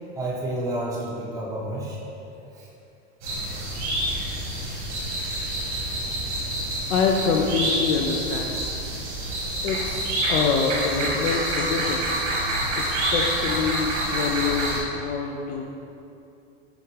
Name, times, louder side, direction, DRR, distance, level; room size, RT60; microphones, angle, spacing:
voice 1, 0.1-2.0 2.5-2.7 3.7-3.8, right 1 dB, 10° right, -6 dB, 0.6 m, -30 dB
sound 1, 3.2-14.8, right 1 dB, 65° right, 1.4 m, -27 dB
voice 2, 6.9-8.6 9.6-12.0 12.8-15.6, left 5 dB, 75° left, 2 dB, 0.5 m, -26 dB
6.0 x 2.4 x 3.2 m, 2.7 s
hypercardioid pair, 105°, 36 cm